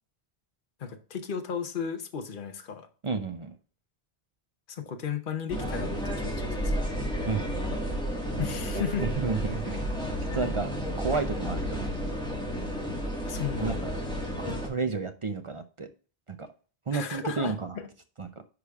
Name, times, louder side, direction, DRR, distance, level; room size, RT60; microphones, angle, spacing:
voice 1, 0.8-2.9 4.7-6.8 8.4-9.0 13.2-13.9 16.9-17.9, left 7 dB, 55° left, 1.0 m, -35 dB
voice 2, 3.0-3.6 7.3-7.4 8.4-8.5 8.7-9.9 10.3-10.7 11.0-11.9 13.6-13.9 14.4-15.9 16.3-16.5 16.9-17.8 18.2-18.3, right 4 dB, 40° right, 0.5 m, -31 dB
sound 1, 5.5-14.7, equal, 5° left, 1.6 m, -32 dB
9.7 x 5.0 x 2.4 m
omnidirectional pair, 1.0 m